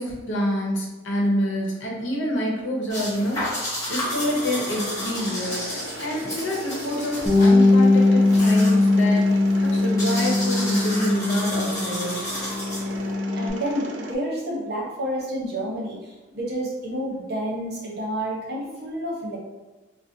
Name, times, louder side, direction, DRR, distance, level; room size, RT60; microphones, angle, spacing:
voice 1, 0.0-3.6 3.9-9.3 9.5-12.3, equal, 75° left, -2 dB, 0.8 m, -27 dB
sound 1, 2.9-13.1, left 1 dB, 20° left, 1.0 m, -33 dB
Mechanisms, 4.0-14.1, right 1 dB, 70° right, 0.4 m, -37 dB
Bass guitar, 7.3-12.0 12.3-13.5, left 2 dB, 15° right, 0.5 m, -20 dB
voice 2, 13.3-19.4, right 1 dB, 55° right, -3 dB, 0.8 m, -29 dB
4.0 x 2.0 x 2.6 m, 1.2 s
head